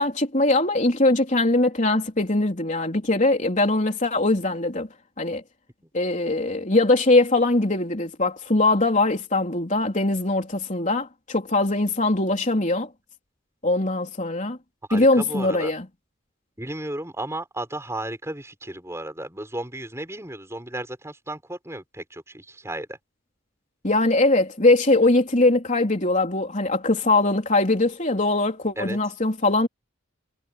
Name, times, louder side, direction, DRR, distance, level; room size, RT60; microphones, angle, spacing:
voice 1, 0.0-4.9 5.2-5.4 5.9-12.9 13.6-14.6 14.9-15.9 23.8-29.7, left 2 dB, 35° left, 3.7 m, -21 dB
voice 2, 14.9-15.7 16.6-23.0 28.8-29.0, right 1 dB, 15° right, 6.3 m, -34 dB
head